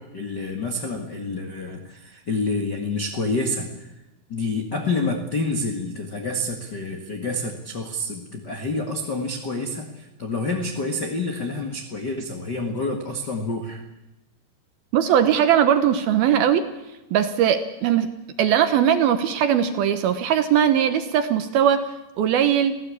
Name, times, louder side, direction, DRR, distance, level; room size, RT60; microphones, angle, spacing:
voice 1, 0.0-3.9 4.3-13.8, left 2 dB, 90° left, 4 dB, 0.9 m, -28 dB
voice 2, 14.9-16.7 17.1-18.1 18.4-21.9 22.2-22.8, right 9 dB, 70° right, 9 dB, 2.5 m, -19 dB
27.0 x 16.5 x 8.5 m, 1.0 s
omnidirectional pair, 5.4 m